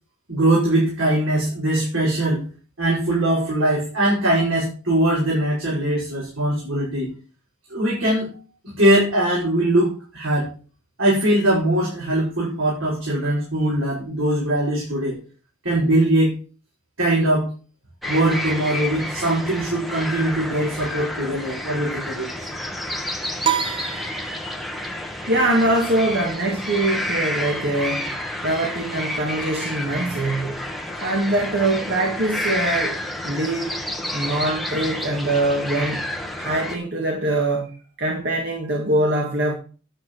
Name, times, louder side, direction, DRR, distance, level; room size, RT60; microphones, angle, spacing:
voice 1, 0.3-2.4 2.8-7.1 7.7-8.3 8.8-10.5 11.0-15.2 15.6-16.3 17.0-17.5 18.1-22.3, right 1 dB, 75° right, -6 dB, 5.7 m, -21 dB
sound 1, 18.0-36.8, left 1 dB, ahead, 1.2 m, -30 dB
sound 2, 23.4-24.9, right 10 dB, 25° right, 0.5 m, -27 dB
voice 2, 25.3-28.1 28.4-30.6 30.9-33.0 33.2-33.8 34.1-36.1 36.4-37.7 38.0-39.5, right 1 dB, 50° right, 0 dB, 2.1 m, -23 dB
10.5 x 8.3 x 4.7 m, 0.37 s
head